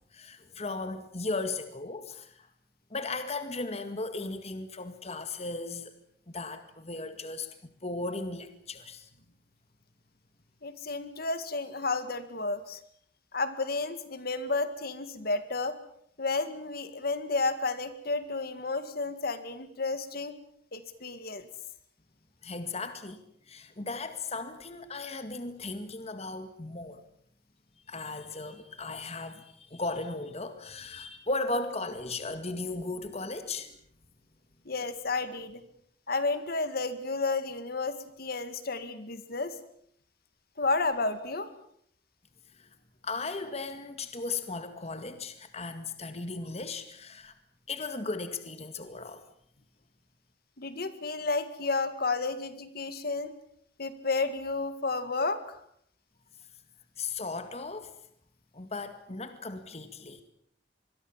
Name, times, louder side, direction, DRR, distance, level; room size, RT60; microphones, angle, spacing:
voice 1, 0.1-2.5 2.9-5.9 6.3-9.1 22.4-23.2 23.5-27.0 27.9-33.8 42.5-42.7 43.0-47.3 47.7-49.2 57.0-57.9 58.5-60.2, left 3 dB, 35° left, 9 dB, 1.9 m, -36 dB
voice 2, 10.6-12.8 13.3-15.8 16.2-20.4 20.7-21.5 34.7-35.6 36.1-39.6 40.6-41.5 50.6-53.3 53.8-55.6, left 3 dB, 55° left, 11 dB, 2.1 m, -31 dB
25.5 x 22.0 x 7.4 m, 0.67 s
head